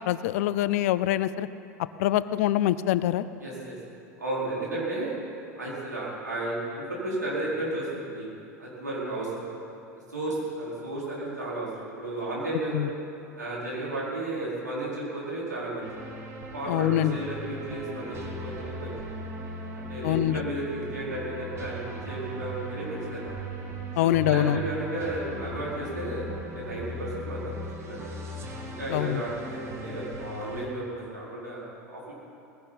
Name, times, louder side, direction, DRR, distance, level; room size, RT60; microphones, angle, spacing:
voice 1, 0.1-1.5 2.0-3.2 12.7-12.9 16.7-17.2 20.0-20.4 24.0-24.6 28.9-29.2, left 14 dB, 60° left, 15 dB, 0.5 m, -24 dB
voice 2, 3.4-3.8 4.2-5.2 5.6-8.3 8.6-9.4 10.1-12.7 13.3-15.8 16.5-18.9 19.6-23.4 24.0-27.5 27.8-28.2 28.6-32.1, right 2 dB, 85° right, -7 dB, 4.7 m, -33 dB
sound 1, 15.8-30.7, right 1 dB, 30° right, 2.2 m, -38 dB
19.5 x 16.0 x 4.2 m, 2.7 s
figure-of-eight pair, 80°, 9 cm